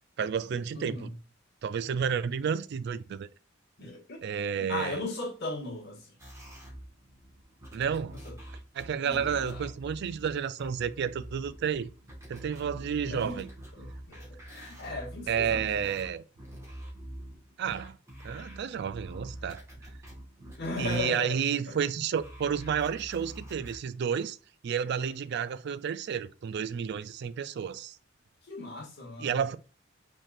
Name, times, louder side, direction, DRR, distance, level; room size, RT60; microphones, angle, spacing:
voice 1, 0.2-1.1 1.6-3.3 4.2-5.0 7.7-8.2 8.7-11.9 12.3-13.5 15.3-16.2 17.6-18.0 18.2-19.6 20.8-24.4 24.6-28.0 29.2-29.6, right 7 dB, 55° right, 0.3 m, -31 dB
voice 2, 0.7-1.2 3.8-4.2 4.6-6.1 8.2-8.3 9.0-9.6 13.1-13.4 13.8-15.7 20.4-21.4 21.7-21.8 28.4-29.6, left 2 dB, 60° left, 1.7 m, -37 dB
sound 1, 6.2-21.7 22.1-23.8, equal, 15° right, 1.5 m, -46 dB
5.2 x 3.7 x 2.5 m
head